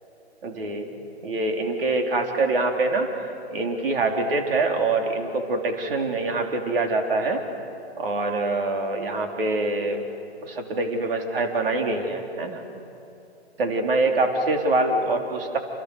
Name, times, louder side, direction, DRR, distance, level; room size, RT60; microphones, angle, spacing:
voice 1, 0.4-3.1 3.5-7.4 8.0-10.0 10.4-12.6 13.6-15.6, right 2 dB, 60° right, 3 dB, 4.3 m, -25 dB
29.0 x 28.0 x 6.6 m, 2.9 s
hypercardioid pair, 150°, 32 cm